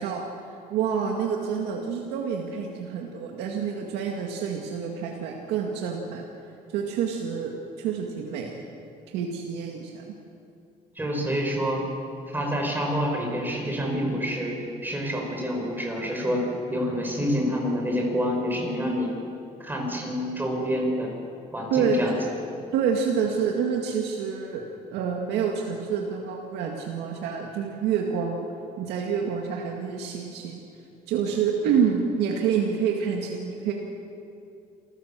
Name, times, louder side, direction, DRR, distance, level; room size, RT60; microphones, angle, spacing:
voice 1, 0.0-6.2 6.7-8.6 9.1-10.0 21.7-22.0 22.7-24.6 24.9-28.5 28.8-30.6 31.1-33.7, right 7 dB, 90° right, 0 dB, 2.0 m, -27 dB
voice 2, 11.0-11.8 12.3-16.4 16.7-19.1 19.6-21.1 21.5-22.2, equal, 10° right, 0 dB, 6.0 m, -27 dB
27.5 x 14.5 x 7.6 m, 2.6 s
cardioid pair, 110°, 17 cm